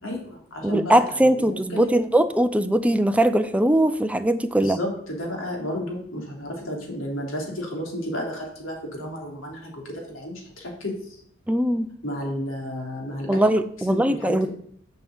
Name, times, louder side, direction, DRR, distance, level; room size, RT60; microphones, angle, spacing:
voice 1, 0.0-1.9 4.6-11.0 12.0-13.5 13.9-14.5, equal, 85° left, 0 dB, 3.4 m, -32 dB
voice 2, 0.6-4.8 11.5-11.9 13.3-14.5, right 1 dB, 5° right, 9 dB, 0.5 m, -20 dB
7.7 x 7.0 x 7.2 m, 0.65 s
head